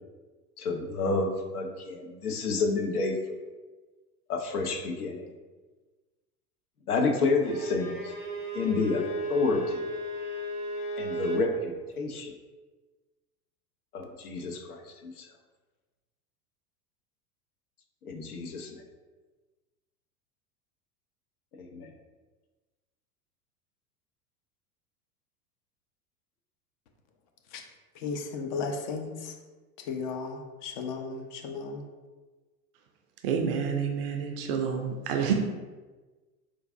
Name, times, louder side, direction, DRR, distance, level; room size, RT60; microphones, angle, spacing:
voice 1, 0.6-3.4 4.3-5.3 6.9-8.1 8.5-9.8 11.0-12.3 13.9-15.3 18.0-18.8 21.5-21.9, left 3 dB, 70° left, 0.7 m, -29 dB
Bowed string instrument, 7.4-11.5, right 1 dB, 15° left, 0.9 m, -34 dB
voice 2, 28.0-29.3 29.8-31.9, left 4 dB, 35° left, 0.4 m, -35 dB
voice 3, 33.2-35.3, right 7 dB, 40° right, 0.4 m, -28 dB
4.5 x 2.4 x 2.5 m
figure-of-eight pair, 80°, 46 cm